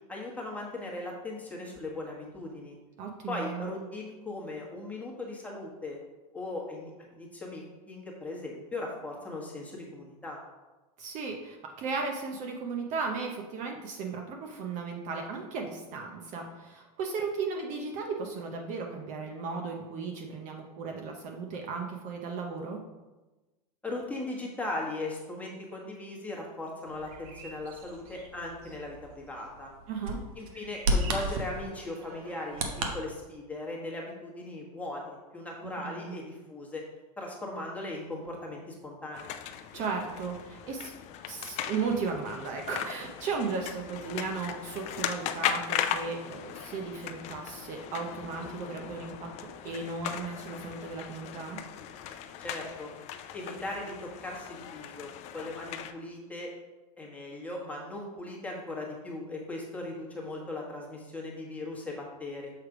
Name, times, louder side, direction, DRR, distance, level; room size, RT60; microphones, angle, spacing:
voice 1, 0.1-2.8 3.3-6.0 6.3-10.4 23.8-29.7 30.4-32.7 32.9-36.8 37.2-39.4 52.4-52.9 53.3-56.5 57.0-62.5, left 2 dB, 5° left, -3 dB, 1.3 m, -38 dB
voice 2, 3.0-3.7 11.0-22.8 29.9-30.2 35.8-36.2 39.7-40.9 41.3-51.6, right 4 dB, 40° right, 2 dB, 0.7 m, -35 dB
Bird vocalization bird call bird song, 26.9-32.9, right 1 dB, 70° right, 1.1 m, -35 dB
sound 1, 39.1-55.9, left 9 dB, 35° left, 0.4 m, -38 dB
6.7 x 3.2 x 4.8 m, 1.1 s
supercardioid pair, 130°, 19 cm